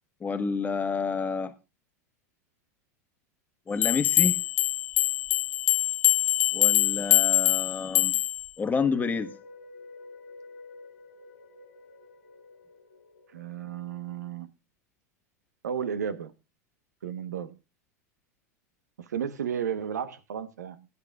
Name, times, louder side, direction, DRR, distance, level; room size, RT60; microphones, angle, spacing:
voice 1, 0.2-1.5 3.7-4.4 6.5-8.2 8.6-9.3, left 5 dB, 20° left, 1.4 m, -29 dB
sound 1, 3.8-8.5, left 18 dB, 65° left, 0.5 m, -24 dB
sound 2, 8.7-13.9, left 2 dB, 85° left, 1.7 m, -49 dB
voice 2, 13.3-14.5 15.6-16.3 17.0-17.6 19.1-20.9, right 8 dB, 85° right, 1.1 m, -33 dB
18.0 x 9.7 x 2.4 m
hypercardioid pair, 95°, 9 cm